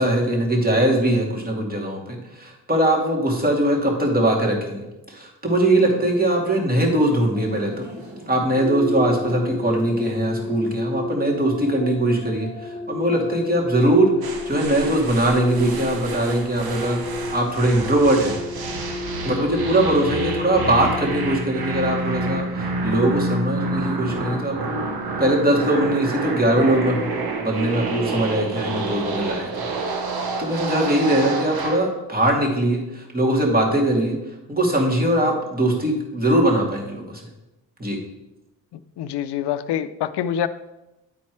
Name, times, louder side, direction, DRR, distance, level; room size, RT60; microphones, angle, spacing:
voice 1, 0.0-7.9 8.3-18.3 19.2-24.8 25.2-30.0 30.4-34.1 34.5-37.2 37.8-38.0, right 1 dB, 20° right, 0 dB, 2.4 m, -21 dB
sound 1, 5.6-10.7, equal, 45° right, 3.0 m, -41 dB
sound 2, 8.5-22.4, left 3 dB, 20° left, 0.7 m, -32 dB
sound 3, 14.2-31.9, right 3 dB, 60° right, 1.1 m, -28 dB
voice 2, 39.0-40.5, left 9 dB, 70° left, 13 dB, 0.6 m, -25 dB
9.7 x 4.2 x 4.7 m, 0.96 s
cardioid pair, 70°, 42 cm